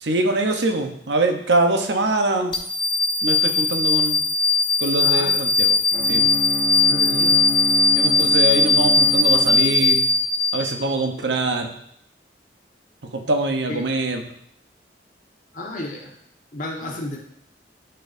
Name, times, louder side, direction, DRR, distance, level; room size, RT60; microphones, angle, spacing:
voice 1, 0.0-2.5 3.2-4.2 4.8-5.8 6.1-6.3 8.0-10.1 10.5-11.8 13.1-14.3, right 2 dB, 80° right, 4 dB, 0.8 m, -23 dB
sound 1, 2.5-11.0, left 3 dB, 25° left, 0.9 m, -19 dB
voice 2, 4.9-5.5 6.9-7.4 13.7-13.8 15.5-16.1 16.5-17.2, left 1 dB, 45° left, -1 dB, 1.4 m, -32 dB
Bowed string instrument, 5.9-10.1, equal, 50° right, 1.5 m, -29 dB
11.5 x 4.5 x 2.6 m, 0.71 s
head